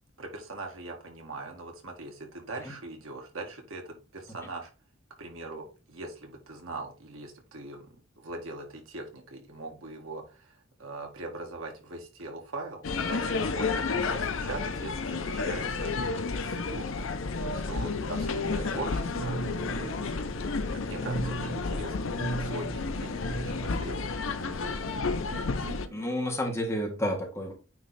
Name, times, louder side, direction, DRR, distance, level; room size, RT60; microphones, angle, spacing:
voice 1, 0.2-4.7 5.2-17.1 17.5-20.2 20.7-24.3, right 2 dB, 85° right, 2 dB, 1.9 m, -41 dB
sound 1, 12.8-25.9, left 4 dB, 75° left, 0.7 m, -31 dB
sound 2, 18.1-26.1, right 4 dB, 45° right, 0.5 m, -40 dB
voice 2, 25.9-27.5, equal, 15° left, 0 dB, 1.7 m, -31 dB
9.1 x 3.2 x 4.1 m, 0.33 s
head